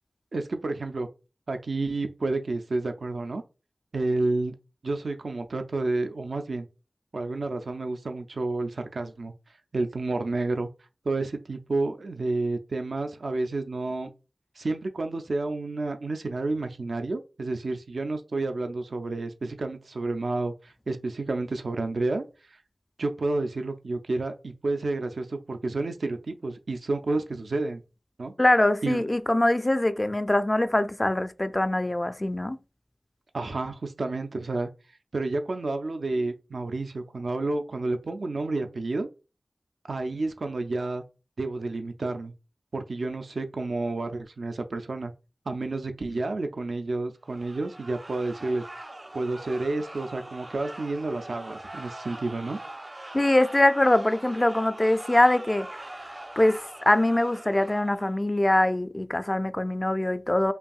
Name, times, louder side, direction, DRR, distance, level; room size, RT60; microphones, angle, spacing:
voice 1, 0.3-1.1 1.5-3.4 3.9-4.5 4.8-6.7 7.1-9.3 9.7-10.7 11.1-14.1 14.6-22.2 22.5-22.6 23.0-27.8 28.2-28.3 28.8-29.1 33.3-34.7 35.1-39.1 39.9-41.0 41.4-42.3 42.7-45.1 45.5-48.8 49.1-52.6, right 2 dB, 85° right, 0.4 m, -30 dB
voice 2, 28.4-32.6 53.1-55.7 56.4-60.5, left 1 dB, 25° left, 0.3 m, -23 dB
sound 1, 47.3-58.2, right 1 dB, 30° right, 0.5 m, -42 dB
5.4 x 2.6 x 2.3 m
wide cardioid pair, 60°, 0 cm